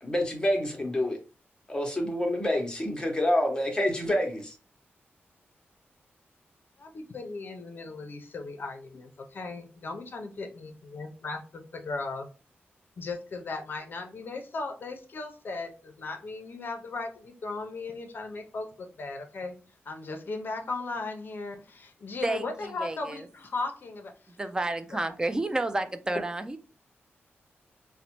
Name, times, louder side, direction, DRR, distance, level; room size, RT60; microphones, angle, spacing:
voice 1, 0.0-1.2 1.7-4.5, left 1 dB, 20° left, 2 dB, 0.8 m, -27 dB
voice 2, 6.8-12.3 13.0-19.5 19.9-24.1 24.9-25.0, left 3 dB, 50° left, 4 dB, 0.5 m, -37 dB
voice 3, 22.2-23.3 24.4-26.6, right 2 dB, 15° right, 10 dB, 0.3 m, -30 dB
3.9 x 2.1 x 2.9 m, 0.35 s
wide cardioid pair, 125°, 4 cm